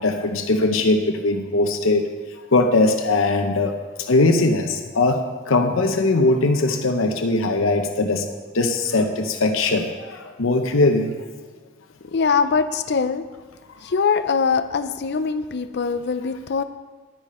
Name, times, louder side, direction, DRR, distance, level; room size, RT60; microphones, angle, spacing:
voice 1, 0.0-2.1 2.5-3.8 4.1-8.3 8.5-11.1, left 2 dB, 90° left, 5 dB, 0.8 m, -20 dB
voice 2, 12.0-13.3 13.8-16.6, left 5 dB, 55° left, 12 dB, 0.5 m, -22 dB
10.0 x 10.0 x 4.3 m, 1.4 s
head